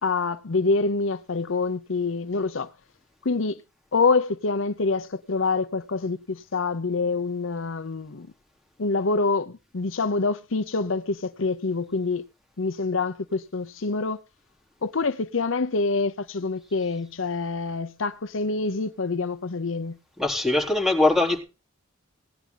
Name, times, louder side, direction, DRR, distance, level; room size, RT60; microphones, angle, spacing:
voice 1, 0.0-2.7 3.2-3.6 3.9-8.3 8.8-12.2 12.6-14.2 14.8-20.0, left 3 dB, 70° left, 0.8 m, -26 dB
voice 2, 20.2-21.4, left 2 dB, ahead, 3.8 m, -21 dB
17.5 x 10.5 x 3.9 m
head